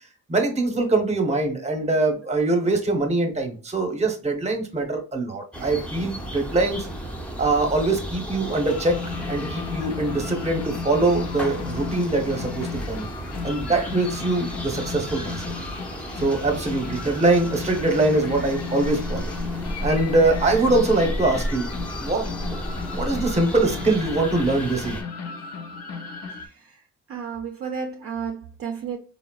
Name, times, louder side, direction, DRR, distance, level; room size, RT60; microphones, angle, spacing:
voice 1, 0.3-6.9 7.4-9.0 9.3-13.1 13.4-15.5 16.2-19.3 19.8-21.7 22.0-22.3 22.9-25.0, right 2 dB, 20° right, 0.8 m, -23 dB
sound 1, 5.5-25.0, equal, 5° left, 0.5 m, -33 dB
sound 2, 8.7-26.5, left 5 dB, 55° left, 0.6 m, -35 dB
voice 2, 26.4-26.8 27.1-29.0, right 6 dB, 50° right, 0.5 m, -32 dB
3.9 x 2.0 x 2.2 m
cardioid pair, 90°, 30 cm